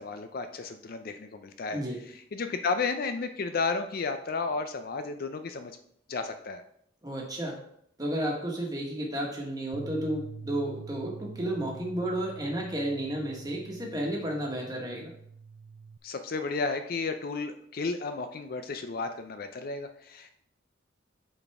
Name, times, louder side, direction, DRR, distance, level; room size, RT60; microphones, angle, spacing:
voice 1, 0.0-1.8 2.3-5.8 6.1-6.6 16.0-20.3, left 4 dB, 50° left, 8 dB, 0.4 m, -33 dB
voice 2, 7.0-7.6 8.0-15.1, right 1 dB, 20° right, -1 dB, 1.4 m, -32 dB
Bass guitar, 9.7-16.0, right 5 dB, 45° right, 0.3 m, -46 dB
8.7 x 4.2 x 3.5 m, 0.69 s
head